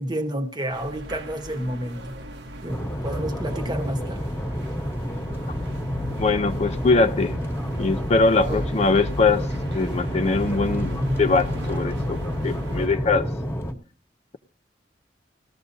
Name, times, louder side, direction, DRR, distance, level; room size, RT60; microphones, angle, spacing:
voice 1, 0.0-2.2 2.6-4.3 8.4-8.6, right 1 dB, 25° right, 1.1 m, -30 dB
sound 1, 0.7-12.9, left 1 dB, 85° right, 1.2 m, -36 dB
sound 2, 2.7-13.7, equal, 15° left, 1.3 m, -29 dB
voice 2, 6.2-7.3 7.8-9.5 9.7-12.2 12.4-13.3, left 3 dB, 40° left, 0.5 m, -22 dB
19.0 x 14.0 x 2.7 m
head